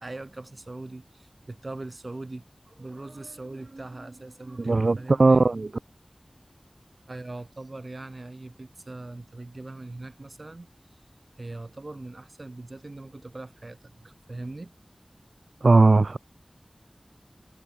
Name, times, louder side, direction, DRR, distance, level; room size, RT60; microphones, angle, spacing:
voice 1, 0.0-5.5 7.1-10.7 11.4-14.7, right 2 dB, 60° right, 3.5 m, -41 dB
voice 2, 4.6-5.7 15.6-16.2, right 3 dB, 85° right, 0.5 m, -18 dB
wide cardioid pair, 50°, 0 cm